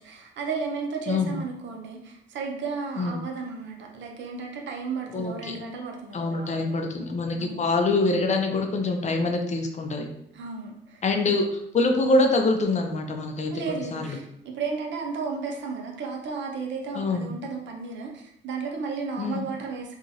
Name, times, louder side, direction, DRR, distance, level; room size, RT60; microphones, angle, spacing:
voice 1, 0.0-6.9 7.3-7.6 10.3-11.0 13.5-19.9, right 4 dB, 65° right, 1 dB, 0.6 m, -34 dB
voice 2, 5.1-5.6 6.1-10.1 11.0-14.2 16.9-17.3 19.2-19.5, left 2 dB, 35° left, 4 dB, 0.4 m, -25 dB
2.9 x 2.4 x 2.7 m, 0.76 s
cardioid pair, 90°, 20 cm